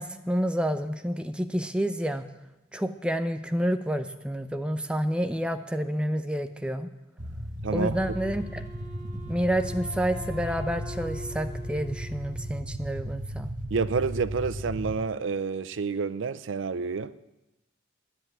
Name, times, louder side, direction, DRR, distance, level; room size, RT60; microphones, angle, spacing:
voice 1, 0.0-2.3 2.7-6.9 7.7-8.6 9.3-13.5, equal, 5° right, 0.6 m, -29 dB
sound 1, 7.2-14.9, equal, 40° right, 1.3 m, -36 dB
voice 2, 7.6-8.0 13.7-17.1, right 5 dB, 85° right, 0.5 m, -29 dB
Wind instrument woodwind instrument, 7.9-12.9, left 2 dB, 25° left, 4.1 m, -44 dB
10.0 x 10.0 x 9.1 m
head